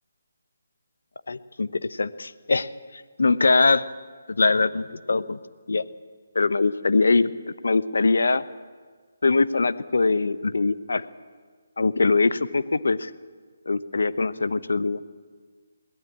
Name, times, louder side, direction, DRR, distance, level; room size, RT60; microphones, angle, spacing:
voice 1, 1.3-3.8 4.3-5.4 5.7-5.8 6.3-7.3 7.6-8.4 9.2-11.0 11.8-13.1 13.7-15.0, left 3 dB, 70° left, 15 dB, 0.9 m, -22 dB
22.0 x 18.0 x 8.7 m, 1.5 s
figure-of-eight pair, 150°, 0 cm